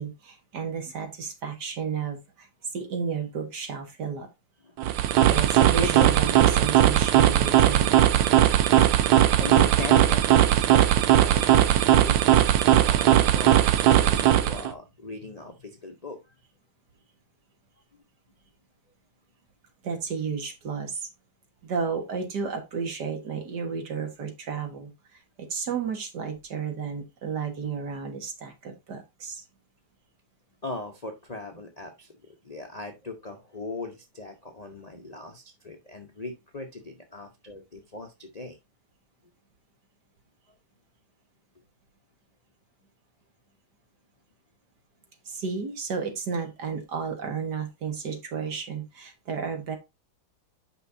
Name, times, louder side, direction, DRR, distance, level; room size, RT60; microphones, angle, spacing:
voice 1, 0.0-4.3 5.3-8.0 19.8-21.1 21.6-24.9 25.4-29.4 45.3-49.8, right 6 dB, 55° right, 5 dB, 1.9 m, -32 dB
sound 1, 4.8-14.7, right 12 dB, 70° right, 1.3 m, -19 dB
voice 2, 5.8-6.6 9.4-16.2 30.6-38.6, left 3 dB, 55° left, 4 dB, 0.4 m, -39 dB
8.4 x 5.7 x 2.6 m, 0.23 s
omnidirectional pair, 2.4 m